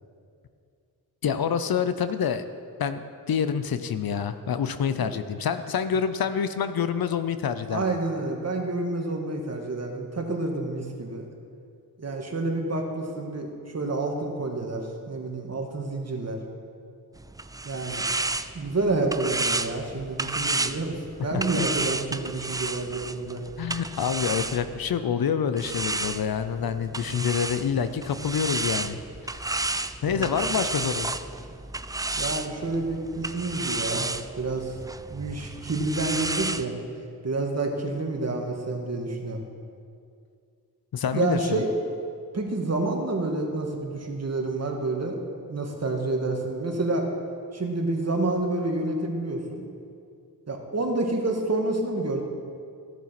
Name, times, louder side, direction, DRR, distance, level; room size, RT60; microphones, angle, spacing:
voice 1, 1.2-2.5 2.8-7.8 21.3-21.7 23.6-29.0 30.0-31.1 40.9-41.6, left 7 dB, 65° left, 11 dB, 0.7 m, -27 dB
voice 2, 7.7-11.3 12.0-16.4 17.6-18.1 18.5-23.4 30.0-30.6 32.2-34.1 34.4-34.7 35.1-36.7 37.2-39.4 41.1-41.7 42.3-45.2 45.5-47.1 47.5-49.6 50.5-52.2, right 2 dB, 40° right, 1 dB, 1.9 m, -29 dB
sound 1, 17.1-25.0 25.6-36.6, right 2 dB, 10° right, 0.3 m, -32 dB
15.0 x 7.2 x 6.0 m, 2.4 s
cardioid pair, 65°, 38 cm